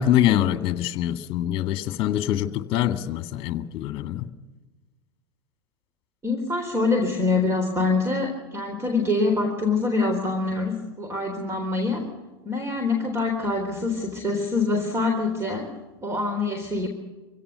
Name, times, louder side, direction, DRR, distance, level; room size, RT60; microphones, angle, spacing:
voice 1, 0.0-4.3, left 11 dB, 40° left, 8 dB, 1.9 m, -24 dB
voice 2, 6.2-12.0 12.4-15.7 16.0-16.9, left 3 dB, 20° right, 4 dB, 3.9 m, -25 dB
25.5 x 17.0 x 6.8 m, 1.2 s
hypercardioid pair, 95°, 14 cm